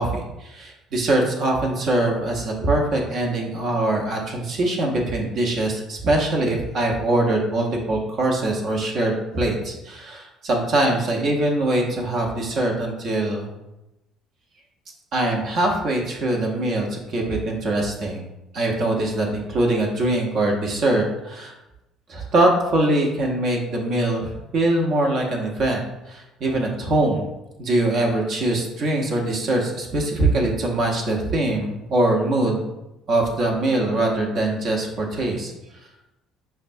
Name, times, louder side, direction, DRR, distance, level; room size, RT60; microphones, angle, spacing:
voice 1, 0.0-13.5 15.1-18.2 18.5-21.5 22.1-27.3 27.6-32.6 33.1-35.5, right 2 dB, 55° right, 0 dB, 0.7 m, -23 dB
5.6 x 2.2 x 2.6 m, 0.94 s
hypercardioid pair, 55°, 0 cm